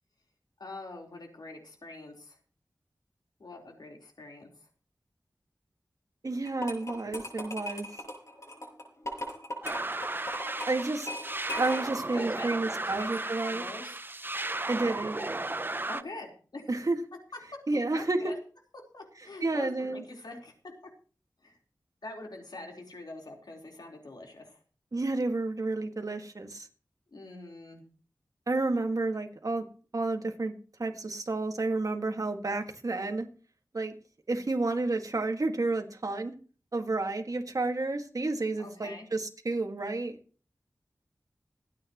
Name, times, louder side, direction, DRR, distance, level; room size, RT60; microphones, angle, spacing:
voice 1, 0.6-2.4 3.4-4.7 12.1-12.5 12.8-13.1 13.4-14.0 15.9-16.8 17.3-18.4 18.9-20.5 21.4-21.6 22.0-24.6 27.1-27.8 38.6-39.1, left 2 dB, 75° left, 1 dB, 4.1 m, -44 dB
voice 2, 6.2-7.9 10.7-11.1 11.6-13.6 14.7-15.2 16.7-17.0 17.7-18.2 19.4-20.0 24.9-26.7 28.5-29.7 29.9-30.5 30.8-33.3 33.7-33.9 34.3-36.3 36.7-40.2, right 2 dB, 55° right, 4 dB, 2.0 m, -30 dB
sound 1, 6.5-12.0, equal, 45° left, 6.2 m, -39 dB
sound 2, 9.6-16.0, right 2 dB, 30° right, 0.7 m, -35 dB
26.5 x 9.6 x 3.1 m, 0.40 s
wide cardioid pair, 80°, 7 cm